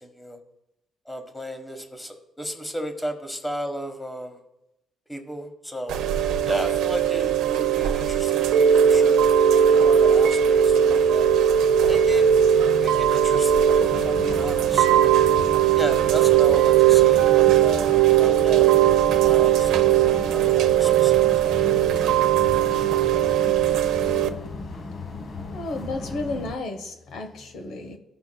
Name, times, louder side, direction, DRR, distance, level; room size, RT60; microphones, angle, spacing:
voice 1, 0.0-0.4 1.0-4.4 5.1-6.0 6.5-11.3 11.9-12.3 12.8-15.1 15.7-17.3 17.6-21.6, equal, 10° left, 6 dB, 1.3 m, -34 dB
Chime / Rain, 5.9-24.3, right 9 dB, 90° right, 0.6 m, -19 dB
sound 1, 13.8-26.5, left 3 dB, 50° left, 1.2 m, -36 dB
voice 2, 25.4-28.0, left 2 dB, 75° left, 5 dB, 1.1 m, -33 dB
15.0 x 5.8 x 2.2 m, 0.91 s
cardioid pair, 90°, 0 cm